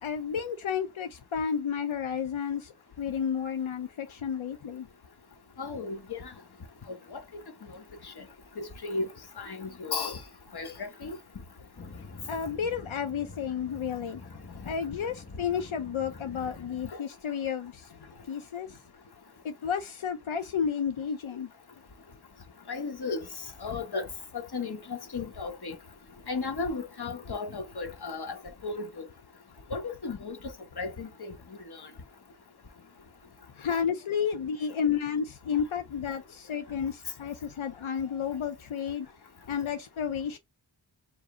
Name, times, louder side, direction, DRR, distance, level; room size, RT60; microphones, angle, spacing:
voice 1, 0.0-2.7 3.0-4.9 12.3-14.2 14.7-17.9 18.3-18.7 19.4-21.5 33.6-39.1 39.5-40.4, left 7 dB, 85° left, 0.6 m, -31 dB
voice 2, 5.6-6.3 6.9-7.4 7.7-7.8 8.0-8.2 8.6-9.1 9.4-10.2 10.5-11.2 16.9-17.0 22.7-23.3 23.6-24.1 24.3-25.8 26.3-28.4 28.6-29.1 29.7-30.4 30.8-31.3 31.8-31.9, left 4 dB, 55° left, 1.0 m, -35 dB
sound 1, 11.8-16.8, left 3 dB, 25° left, 0.7 m, -46 dB
4.8 x 2.1 x 3.6 m
wide cardioid pair, 65°, 47 cm